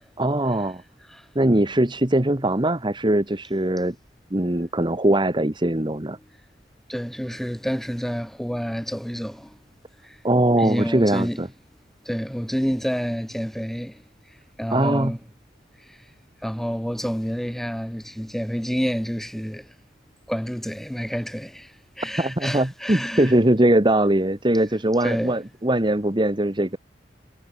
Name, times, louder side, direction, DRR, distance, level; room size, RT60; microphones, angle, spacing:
voice 1, 0.2-0.8 1.3-3.9 4.3-6.2 10.2-11.5 14.7-15.1 22.2-26.8, right 1 dB, 25° right, 1.5 m, -21 dB
voice 2, 6.9-9.6 10.0-10.2 10.6-11.4 12.1-14.0 14.6-15.2 15.8-16.0 16.4-19.7 20.3-23.3 25.0-25.3, equal, ahead, 7.0 m, -28 dB
head